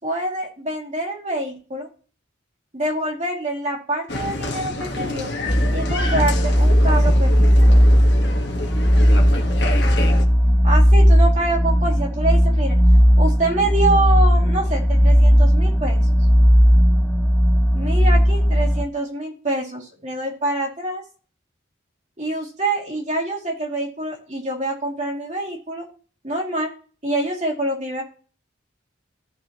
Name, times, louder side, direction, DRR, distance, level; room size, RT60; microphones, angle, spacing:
voice 1, 0.0-1.9 2.7-5.3 5.7-7.7 10.6-12.8 13.2-16.1 17.7-21.0 22.2-25.9 26.2-26.7 27.0-28.0, right 2 dB, 35° right, -2 dB, 2.5 m, -26 dB
Applause, 4.1-10.2, left 2 dB, 55° left, 1.4 m, -28 dB
sound 1, 5.5-18.8, equal, 5° left, 0.6 m, -16 dB
15.0 x 5.5 x 3.0 m, 0.39 s
head